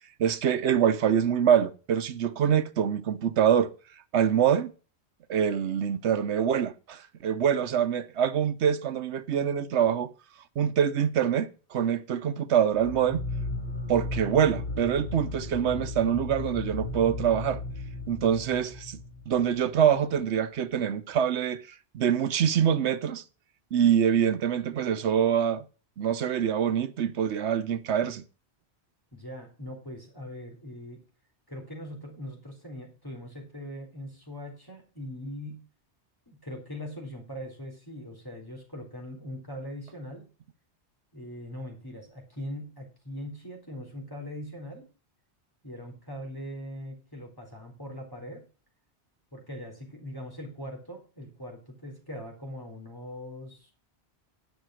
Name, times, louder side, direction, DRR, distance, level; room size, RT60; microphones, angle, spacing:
voice 1, 0.2-3.7 4.1-4.7 5.3-10.1 10.6-13.2 13.9-17.6 18.1-19.0 19.3-21.6 21.9-23.2 23.7-25.6 26.0-28.2, right 8 dB, 90° right, 1.1 m, -25 dB
sound 1, 12.7-20.1, left 2 dB, 45° left, 2.0 m, -36 dB
voice 2, 29.1-31.0 31.5-35.6 36.3-40.3 41.1-44.9 45.6-48.4 49.3-53.7, equal, 20° left, 3.9 m, -41 dB
10.5 x 6.2 x 6.3 m
omnidirectional pair, 1.1 m